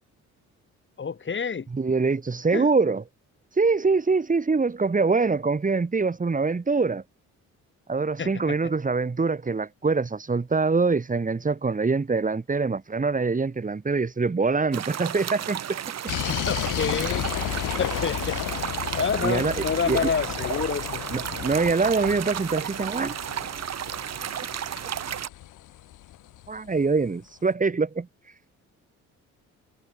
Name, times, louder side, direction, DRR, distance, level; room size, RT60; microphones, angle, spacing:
voice 1, 1.0-1.7 2.5-2.7 8.2-8.6 16.3-17.3 17.8-18.4 18.9-21.0, left 6 dB, 40° left, 4.7 m, -28 dB
voice 2, 1.7-3.0 3.5-7.0 7.9-15.8 19.2-20.1 21.1-23.1 26.5-28.3, right 4 dB, 25° right, 4.1 m, -24 dB
sound 1, 14.7-25.3, right 10 dB, 60° right, 2.2 m, -33 dB
sound 2, 16.1-26.8, left 14 dB, 85° left, 4.9 m, -33 dB
cardioid pair, 90°, 30 cm